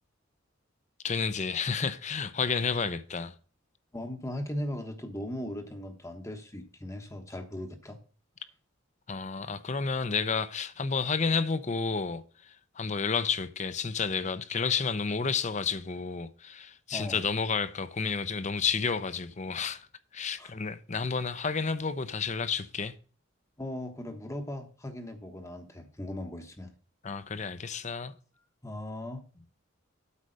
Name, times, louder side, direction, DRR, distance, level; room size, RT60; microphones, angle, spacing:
voice 1, 1.0-3.3 9.1-19.9 20.1-22.9 27.0-28.1, left 5 dB, 35° left, 0.7 m, -31 dB
voice 2, 3.9-8.0 16.9-17.2 20.4-20.5 23.6-26.7 28.6-29.5, left 1 dB, 15° left, 1.1 m, -38 dB
8.4 x 4.9 x 6.5 m
head